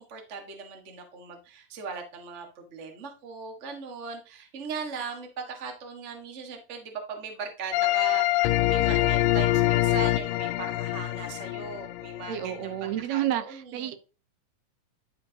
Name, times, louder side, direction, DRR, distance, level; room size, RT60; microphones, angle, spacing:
voice 1, 0.0-13.9, right 5 dB, 35° right, 1.2 m, -39 dB
sound 1, 7.7-12.5, left 15 dB, 90° left, 2.2 m, -25 dB
voice 2, 12.3-14.0, right 12 dB, 70° right, 1.8 m, -30 dB
12.0 x 5.0 x 2.8 m
omnidirectional pair, 3.8 m